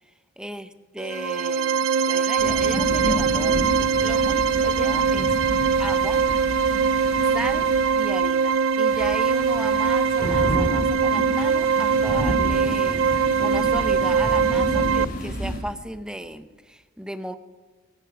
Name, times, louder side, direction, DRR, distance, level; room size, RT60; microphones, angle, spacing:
voice 1, 0.4-5.3 5.8-6.2 7.3-7.7 8.0-17.4, right 1 dB, 5° right, 10 dB, 0.7 m, -35 dB
sound 1, 1.0-15.0, right 6 dB, 65° right, 0.5 m, -22 dB
sound 2, 2.4-8.4 8.9-15.6, equal, 45° left, 4.7 m, -30 dB
23.0 x 9.9 x 5.0 m, 1.4 s
head